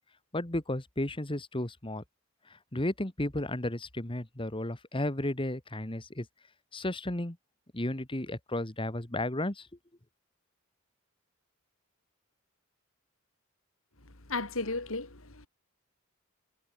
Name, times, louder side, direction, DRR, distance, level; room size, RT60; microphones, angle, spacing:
voice 1, 0.3-2.0 2.7-6.3 6.7-7.4 7.7-9.7, left 1 dB, 25° left, 1.9 m, -33 dB
voice 2, 14.3-15.5, left 3 dB, 75° left, 3.5 m, -34 dB
head